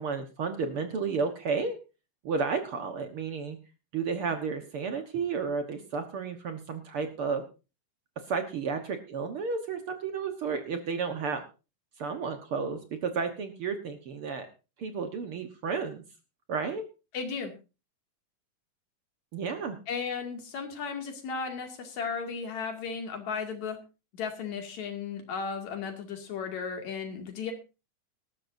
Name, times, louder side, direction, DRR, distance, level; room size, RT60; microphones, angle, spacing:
voice 1, 0.0-1.8 2.2-3.6 3.9-7.4 8.3-11.4 12.0-14.5 14.8-16.0 16.5-16.8 19.3-19.8, right 5 dB, 55° right, 7 dB, 1.7 m, -32 dB
voice 2, 17.1-17.5 19.9-23.8 24.1-27.5, left 5 dB, 60° left, 4 dB, 3.7 m, -35 dB
18.5 x 13.5 x 2.7 m, 0.31 s
omnidirectional pair, 3.7 m